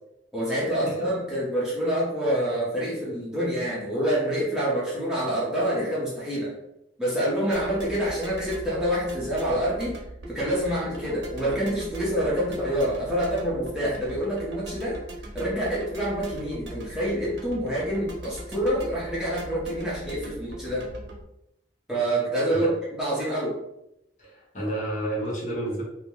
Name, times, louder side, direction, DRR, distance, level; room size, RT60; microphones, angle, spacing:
voice 1, 0.3-6.5 7.0-10.0 10.3-15.0 15.3-20.9 21.9-23.6, equal, 5° right, -8 dB, 0.6 m, -27 dB
sound 1, 7.5-21.2, right 1 dB, 75° right, 0.6 m, -40 dB
voice 2, 24.2-25.8, right 1 dB, 40° left, -4 dB, 0.7 m, -30 dB
2.2 x 2.1 x 3.0 m, 0.84 s
head